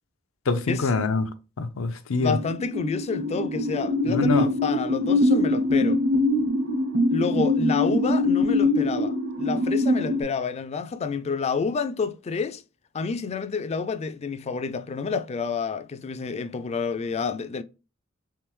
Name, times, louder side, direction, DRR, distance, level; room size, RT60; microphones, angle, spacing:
voice 1, 0.5-1.3 1.6-2.4 4.1-4.5, left 3 dB, 90° left, 0.5 m, -25 dB
voice 2, 2.2-6.0 7.1-12.6 12.9-17.6, left 5 dB, 30° left, 0.3 m, -29 dB
sound 1, 2.3-10.2, left 1 dB, 70° right, 1.5 m, -23 dB
3.4 x 3.3 x 3.0 m
head